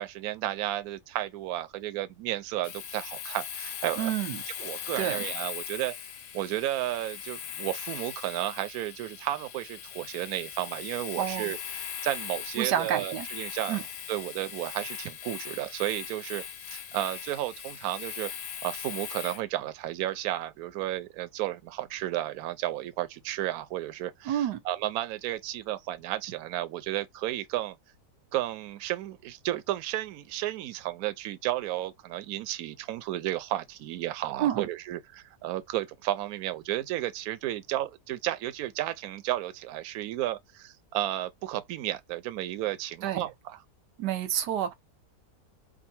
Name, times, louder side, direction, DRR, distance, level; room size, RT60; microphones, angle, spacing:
voice 1, 0.0-4.1 4.6-5.9 6.3-13.8 14.1-16.4 16.7-18.3 18.6-27.8 28.3-43.6, right 14 dB, 70° right, 1.0 m, -33 dB
Domestic sounds home sounds, 2.6-19.4, left 9 dB, 80° left, 1.3 m, -39 dB
voice 2, 4.0-4.4 5.0-5.3 11.2-11.5 12.6-13.3 13.7-13.8 24.3-24.6 34.4-34.7 43.0-43.2 44.0-44.7, right 11 dB, 90° right, 1.4 m, -29 dB
3.8 x 2.3 x 4.2 m
omnidirectional pair, 1.8 m